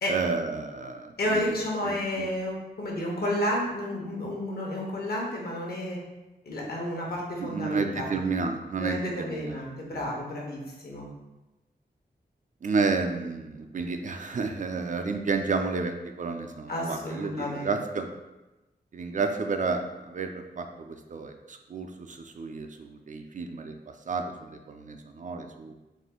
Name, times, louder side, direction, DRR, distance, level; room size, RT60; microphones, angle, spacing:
voice 1, 0.1-1.4 1.8-2.3 7.4-9.6 9.9-10.0 12.6-18.1 18.9-25.7, right 4 dB, 45° right, 5 dB, 0.4 m, -31 dB
voice 2, 1.2-6.0 6.4-8.1 8.8-11.1 16.7-17.7, left 1 dB, 60° left, -2 dB, 1.1 m, -31 dB
4.2 x 2.5 x 3.7 m, 1.1 s
wide cardioid pair, 100°, 18 cm